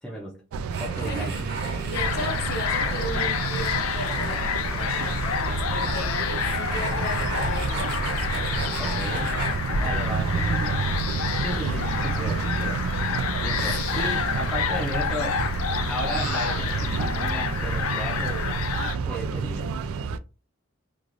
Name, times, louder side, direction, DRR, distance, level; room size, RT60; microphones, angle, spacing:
voice 1, 0.0-0.4 0.8-1.9 8.8-9.4 9.8-10.8 11.4-12.8 13.4-15.4 15.9-18.4 19.0-19.7, equal, 5° left, 0.5 m, -35 dB
sound 1, 0.5-20.2, right 5 dB, 80° right, 0.3 m, -30 dB
sound 2, 0.7-9.5, right 3 dB, 50° right, 0.9 m, -37 dB
voice 2, 1.0-1.4 1.9-8.0 11.6-11.9 13.8-14.0, left 1 dB, 50° left, 0.8 m, -36 dB
sound 3, 1.9-19.0, left 6 dB, 80° left, 0.4 m, -28 dB
2.5 x 2.4 x 3.1 m
head